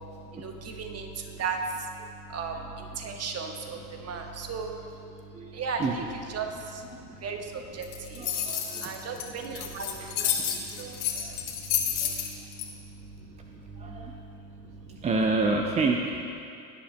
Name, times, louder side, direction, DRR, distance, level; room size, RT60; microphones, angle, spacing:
voice 1, 0.0-6.0 6.3-8.3 8.6-15.1, right 4 dB, 30° right, 3 dB, 1.3 m, -37 dB
voice 2, 5.3-5.9 6.3-6.4 8.2-9.2 9.8-10.5 10.8-11.4 12.0-12.2 13.8-14.2 15.0-16.2, right 3 dB, 15° right, 2 dB, 0.5 m, -30 dB
sound 1, 7.8-12.6, left 9 dB, 50° left, 1.8 m, -30 dB
18.0 x 10.0 x 2.2 m, 2.7 s
hypercardioid pair, 75°, 49 cm